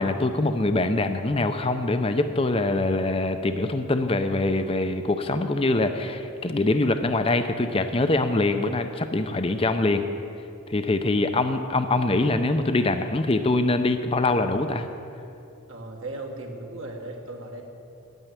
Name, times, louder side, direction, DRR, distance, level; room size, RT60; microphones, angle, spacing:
voice 1, 0.0-10.0 10.7-14.9, left 2 dB, 25° left, 8 dB, 0.5 m, -24 dB
voice 2, 15.7-17.6, right 2 dB, 70° right, 1 dB, 1.6 m, -37 dB
9.1 x 9.1 x 9.8 m, 2.7 s
head